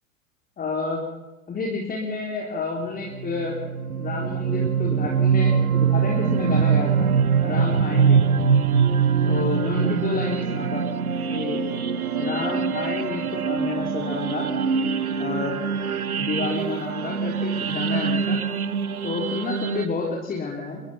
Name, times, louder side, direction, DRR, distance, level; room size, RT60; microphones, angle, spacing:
voice 1, 0.6-1.0 1.5-3.6 4.0-6.9 7.4-8.2 9.3-10.8 11.3-11.6 12.2-14.5 15.2-15.6 16.2-18.4 19.0-20.8, left 4 dB, 20° left, 0 dB, 3.8 m, -30 dB
sound 1, 3.1-19.9, right 6 dB, 85° right, 1.2 m, -23 dB
23.0 x 22.5 x 5.9 m, 1.1 s
figure-of-eight pair, 100°, 42 cm